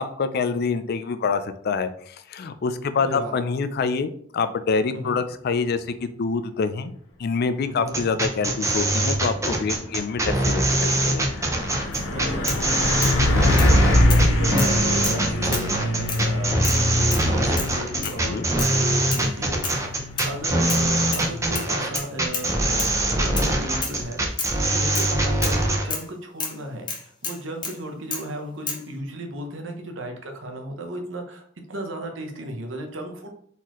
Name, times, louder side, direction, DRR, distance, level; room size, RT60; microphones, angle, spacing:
voice 1, 0.0-1.9 2.3-6.9 7.2-11.3 18.2-18.5, left 5 dB, 55° left, 11 dB, 0.4 m, -26 dB
voice 2, 3.0-3.4 4.9-5.2 7.7-8.1 12.1-12.5 12.8-19.7 20.2-24.4 24.7-33.3, right 1 dB, 70° right, 4 dB, 0.9 m, -35 dB
sound 1, 7.9-25.8, right 1 dB, 15° right, 0.7 m, -23 dB
Truck, 9.0-23.3, left 1 dB, 85° left, 1.0 m, -25 dB
sound 2, 11.9-12.1 12.5-13.2 13.6-13.7 14.1-14.3 14.6-15.2 15.5-15.7 16.1-16.3 16.6-16.8 17.1-17.3 17.6-17.7 18.0-18.2 18.6-18.8 19.1-19.3 19.6-19.8 20.2-20.8 21.1-21.3 21.5-22.5 22.8-22.9 23.4-23.6 23.8-24.0 24.4-24.6 24.9-25.1 25.4-25.6 25.9-26.1 26.4-26.6 26.9-27.8 28.1-28.3 28.7-28.8, left 4 dB, 25° left, 0.9 m, -31 dB
4.1 x 4.0 x 3.0 m, 0.62 s
head